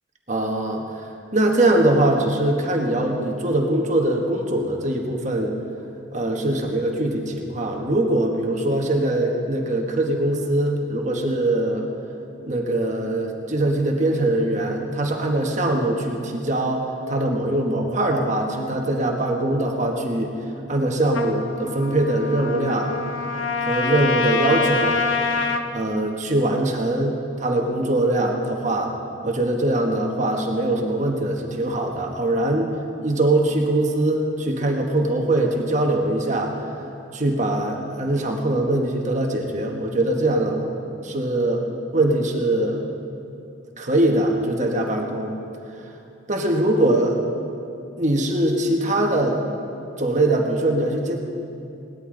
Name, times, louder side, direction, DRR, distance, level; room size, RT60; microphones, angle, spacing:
voice 1, 0.3-5.5 6.1-11.9 12.4-20.3 20.7-22.9 23.6-25.0 25.7-28.9 29.2-36.6 37.1-40.7 41.0-41.6 41.9-42.8 43.8-45.3 46.3-47.2 48.0-49.4 50.0-51.2, right 1 dB, 35° right, 1 dB, 1.4 m, -22 dB
Trumpet, 21.1-25.7, left 4 dB, 80° left, 0.8 m, -25 dB
18.5 x 12.5 x 3.9 m, 2.7 s
head